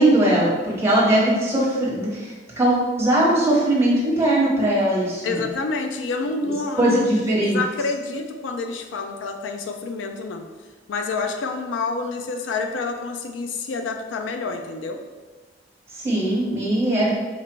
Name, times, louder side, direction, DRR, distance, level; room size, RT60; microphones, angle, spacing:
voice 1, 0.0-5.5 6.4-6.5 6.8-7.6 15.9-17.1, right 1 dB, 15° right, -6 dB, 1.3 m, -20 dB
voice 2, 5.2-10.5 10.9-15.0, left 3 dB, 85° left, 5 dB, 0.4 m, -28 dB
4.5 x 2.5 x 4.5 m, 1.3 s
head